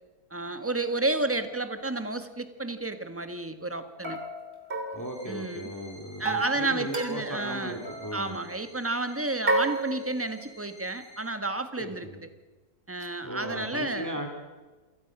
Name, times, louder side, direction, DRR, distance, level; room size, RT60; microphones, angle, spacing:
voice 1, 0.3-4.2 5.3-5.7 6.2-7.8 8.1-12.3 12.9-14.2, right 2 dB, 10° right, 9 dB, 1.3 m, -31 dB
sound 1, 1.7-1.8 4.0-5.7 6.3-7.5 7.8-8.2 9.5-10.5, right 2 dB, 35° right, 2.9 m, -31 dB
voice 2, 4.9-8.4 11.8-12.2 13.2-14.3, equal, 10° left, 4 dB, 2.5 m, -36 dB
sound 2, 5.0-11.2, left 1 dB, 70° left, 6.0 m, -52 dB
27.0 x 18.5 x 6.0 m, 1.3 s
omnidirectional pair, 1.7 m